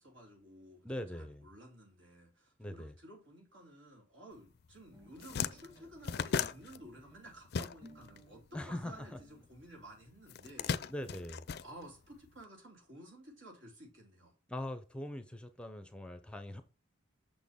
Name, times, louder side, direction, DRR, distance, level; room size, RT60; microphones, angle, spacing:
voice 1, 0.0-10.8 11.6-14.3, right 1 dB, 75° right, 3.3 m, -54 dB
voice 2, 0.8-1.5 2.6-2.9 8.5-9.2 10.9-11.4 14.5-16.6, left 1 dB, 5° left, 0.6 m, -42 dB
sound 1, 4.6-4.7 5.0-8.2 8.4-9.6 10.3-12.3, left 6 dB, 55° left, 0.4 m, -37 dB
sound 2, 4.9-9.5 10.3-10.4 10.7-10.8 11.0-11.1 11.3-12.0, equal, 20° right, 1.3 m, -59 dB
6.4 x 6.2 x 3.6 m
head